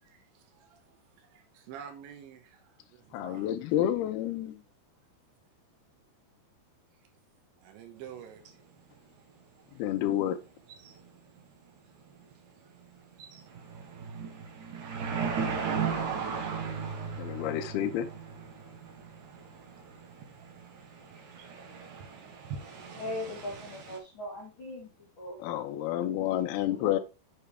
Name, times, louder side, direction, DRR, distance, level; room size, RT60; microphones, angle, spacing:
voice 1, 0.0-3.5 7.6-8.4 9.7-9.8, right 8 dB, 90° right, 3.3 m, -49 dB
voice 2, 3.1-4.6 9.7-10.4 17.2-18.1 25.4-27.0, left 12 dB, 85° left, 2.4 m, -29 dB
sound 1, 8.1-8.2 8.5-8.6 10.7-11.1 11.4-11.5 12.0-12.3 12.8-12.9 13.1-24.0, right 6 dB, 60° right, 2.2 m, -37 dB
voice 3, 22.9-25.4 26.7-27.0, left 1 dB, 35° left, 2.3 m, -40 dB
6.9 x 6.8 x 3.4 m
omnidirectional pair, 5.1 m